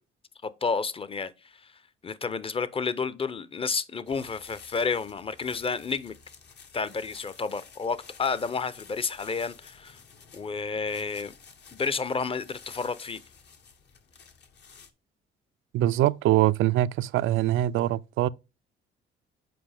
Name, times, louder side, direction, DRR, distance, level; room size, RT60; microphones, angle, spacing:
voice 1, 0.4-1.7 2.0-6.1 6.7-10.0 10.3-11.3 11.7-13.2, left 5 dB, 30° left, 0.7 m, -31 dB
sound 1, 4.1-14.9, left 6 dB, 60° left, 1.3 m, -52 dB
voice 2, 15.7-18.3, right 14 dB, 85° right, 0.4 m, -23 dB
7.8 x 4.8 x 3.4 m
cardioid pair, 90°, 20 cm